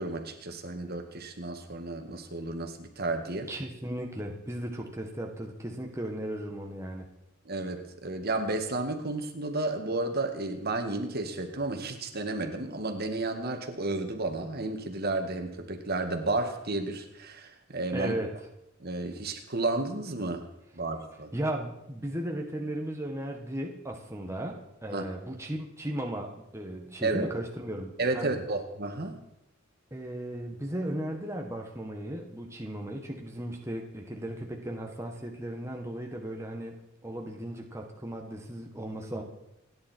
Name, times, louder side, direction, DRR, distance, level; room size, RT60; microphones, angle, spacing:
voice 1, 0.0-3.5 7.5-18.2 18.8-20.5 20.7-21.3 24.9-25.0 27.0-27.3 28.0-29.2, right 2 dB, 50° right, 5 dB, 2.0 m, -32 dB
voice 2, 3.5-7.1 17.9-18.3 21.3-28.4 29.9-36.8 37.0-39.2, right 1 dB, 15° right, 1 dB, 1.5 m, -36 dB
29.0 x 10.5 x 4.5 m, 0.86 s
head